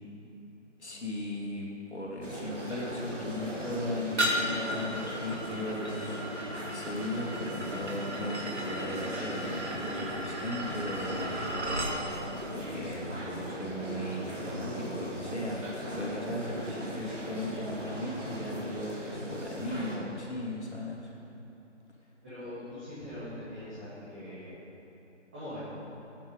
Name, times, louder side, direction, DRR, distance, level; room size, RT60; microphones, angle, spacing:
voice 1, 0.8-6.3 6.7-11.9 12.5-21.1, left 1 dB, 60° left, -3 dB, 2.6 m, -37 dB
sound 1, 2.2-20.0, equal, 80° right, 2.9 m, -38 dB
sound 2, 4.2-12.0, right 1 dB, 65° right, 2.0 m, -35 dB
voice 2, 22.2-24.5 25.3-25.6, left 1 dB, 10° right, -16 dB, 1.8 m, -42 dB
13.0 x 9.5 x 5.5 m, 3.0 s
figure-of-eight pair, 170°, 37 cm